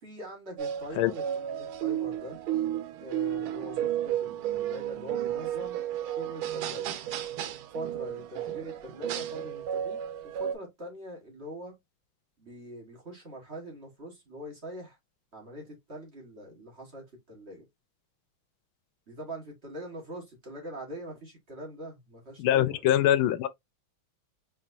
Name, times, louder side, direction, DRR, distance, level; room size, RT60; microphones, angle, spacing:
voice 1, 0.0-1.2 1.6-2.4 3.0-7.0 7.7-11.8 12.4-15.0 15.3-17.6 19.1-22.8, equal, 35° right, 1.7 m, -43 dB
sound 1, 0.6-10.5, right 11 dB, 85° right, 1.5 m, -33 dB
voice 2, 22.4-23.5, left 12 dB, 85° left, 1.4 m, -23 dB
4.4 x 3.4 x 2.5 m
omnidirectional pair, 2.2 m